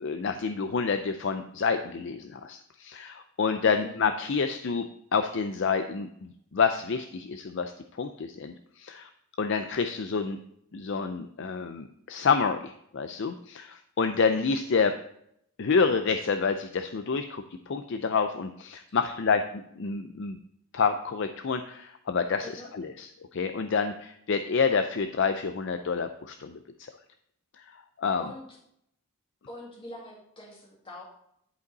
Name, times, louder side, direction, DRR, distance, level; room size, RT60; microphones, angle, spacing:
voice 1, 0.0-7.7 8.0-9.1 9.4-10.4 10.7-14.9 15.6-19.4 19.8-20.4 20.7-26.9 27.6-27.7 28.0-28.2, left 5 dB, 55° left, 8 dB, 0.4 m, -28 dB
voice 2, 3.6-4.0 18.9-19.4 22.4-22.7 28.2-28.6 29.5-31.0, left 1 dB, 25° left, -3 dB, 2.1 m, -45 dB
11.0 x 5.3 x 4.0 m, 0.71 s
head